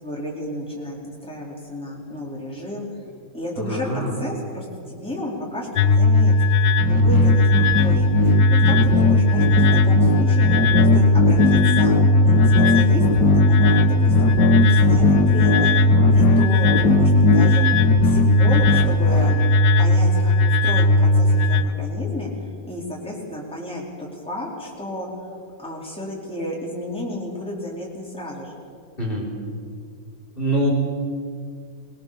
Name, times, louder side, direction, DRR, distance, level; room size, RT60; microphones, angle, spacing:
voice 1, 0.0-2.9 3.3-6.3 6.8-8.4 8.6-10.5 10.9-14.3 14.6-15.8 16.1-17.6 18.0-28.5, left 1 dB, 5° left, -4 dB, 4.4 m, -32 dB
voice 2, 3.6-4.2 29.0-29.3 30.4-30.7, right 1 dB, 30° left, -2 dB, 4.3 m, -24 dB
sound 1, 5.8-21.6, left 1 dB, 45° left, 1.0 m, -17 dB
sound 2, 6.8-19.3, left 5 dB, 70° left, 1.9 m, -21 dB
24.5 x 20.5 x 7.1 m, 2.2 s
omnidirectional pair, 1.9 m